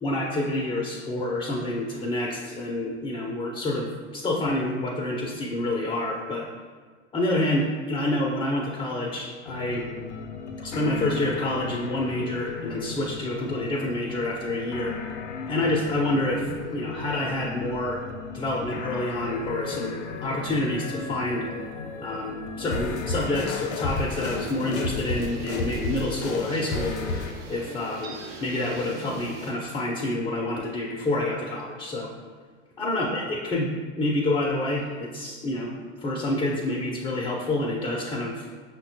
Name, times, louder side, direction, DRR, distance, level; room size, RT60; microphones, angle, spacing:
voice 1, 0.0-6.5 7.1-9.9 10.6-15.0 15.4-18.0 18.3-21.5 22.0-26.9 27.5-32.1 32.8-35.7 36.0-38.4, left 1 dB, 10° left, -3 dB, 0.3 m, -28 dB
sound 1, 9.5-27.3, left 4 dB, 65° left, 0.5 m, -34 dB
sound 2, 23.9-29.5, right 3 dB, 35° right, 0.6 m, -40 dB
5.5 x 2.1 x 2.7 m, 1.5 s
hypercardioid pair, 90°, 35 cm